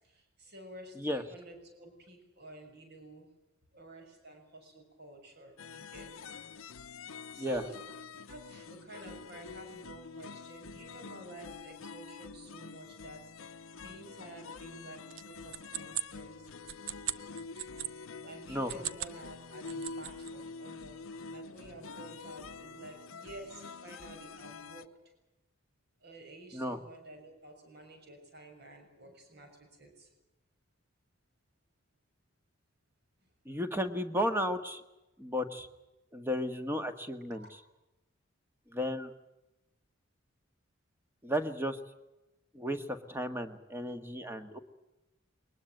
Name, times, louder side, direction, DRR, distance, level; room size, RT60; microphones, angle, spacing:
voice 1, 0.0-3.3 3.7-6.4 6.7-6.9 7.3-7.7 8.2-16.5 18.2-21.0 21.3-24.9 26.0-30.1 37.3-37.5, right 1 dB, 50° right, 4 dB, 6.5 m, -51 dB
sound 1, 5.6-24.9, left 4 dB, 80° left, 0.9 m, -47 dB
sound 2, 15.1-17.9 18.5-19.2 19.5-20.3, right 12 dB, 70° right, 1.0 m, -39 dB
voice 2, 33.5-34.8 35.2-35.7 36.1-37.5 38.7-39.1 41.2-41.8 42.5-44.6, equal, 10° right, 8 dB, 1.7 m, -34 dB
23.0 x 20.5 x 9.1 m, 0.99 s
head